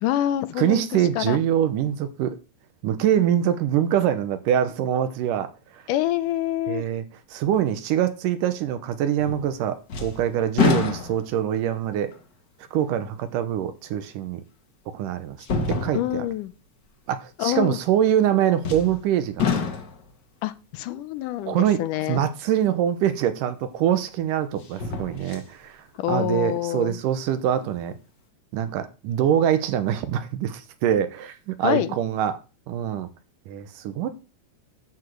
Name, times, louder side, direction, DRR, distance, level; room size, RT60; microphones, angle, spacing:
voice 1, 0.0-0.9 1.2-1.4 5.9-6.8 15.9-16.5 17.4-17.8 20.4-22.2 26.0-27.0 31.6-31.9, left 13 dB, 80° left, 2.2 m, -26 dB
voice 2, 0.6-2.4 2.8-5.8 6.7-7.0 7.3-12.1 12.7-14.4 14.9-15.4 15.7-16.3 17.1-19.5 21.5-21.8 22.1-28.0 28.5-32.4 32.7-33.1 33.5-34.1, right 10 dB, 85° right, 2.6 m, -24 dB
sound 1, 9.2-9.6 9.9-11.5 12.1-12.2 14.0-14.1 15.4-16.3 18.6-19.1 19.4-20.1 23.1-23.2 24.6-25.5 25.9-26.0, left 6 dB, 45° left, 1.4 m, -27 dB
9.2 x 4.9 x 7.8 m
omnidirectional pair, 3.8 m